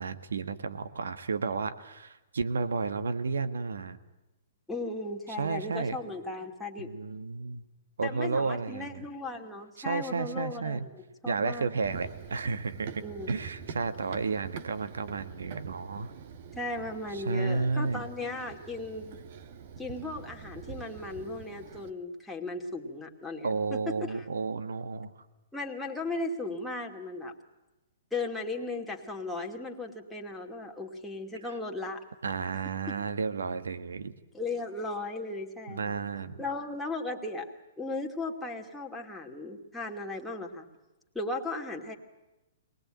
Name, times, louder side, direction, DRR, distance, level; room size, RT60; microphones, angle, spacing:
voice 1, 0.0-4.0 5.4-5.9 6.8-7.6 8.0-9.0 9.8-10.9 11.2-16.1 17.1-18.1 23.4-25.1 31.5-31.6 32.2-34.1 35.7-36.4, right 4 dB, 80° right, 10 dB, 1.7 m, -32 dB
voice 2, 4.7-6.9 8.0-11.7 13.0-13.3 16.6-19.2 19.8-24.2 25.5-27.3 28.1-32.0 34.3-35.9 36.4-40.7 41.1-42.0, left 2 dB, 5° left, -1 dB, 2.5 m, -36 dB
Run, 11.8-21.9, right 7 dB, 50° right, 1.6 m, -45 dB
23.0 x 19.5 x 8.9 m, 1.0 s
hypercardioid pair, 130°, 0 cm